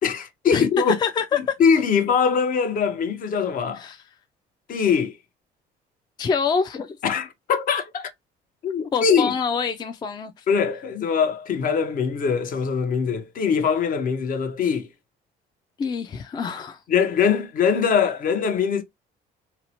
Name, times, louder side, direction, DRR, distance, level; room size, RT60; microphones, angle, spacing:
voice 1, 0.0-1.0 1.4-3.9 4.7-5.2 7.0-8.1 8.6-9.3 10.5-14.9 16.9-18.8, left 6 dB, 55° left, 0.7 m, -22 dB
voice 2, 0.5-1.6 3.7-4.0 6.2-7.0 8.9-10.5 15.8-16.8, left 6 dB, 25° left, 0.3 m, -26 dB
2.8 x 2.0 x 2.8 m
cardioid pair, 110°, 17 cm